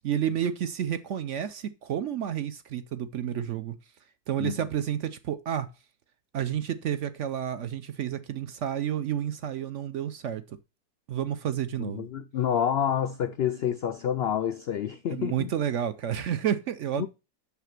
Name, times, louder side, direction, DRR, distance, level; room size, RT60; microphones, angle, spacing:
voice 1, 0.0-3.7 4.3-5.7 6.3-10.6 11.1-12.1 15.1-17.1, right 9 dB, 60° right, 0.8 m, -30 dB
voice 2, 11.8-15.5 17.0-17.1, left 9 dB, 75° left, 0.5 m, -28 dB
6.7 x 5.8 x 5.8 m
omnidirectional pair, 1.7 m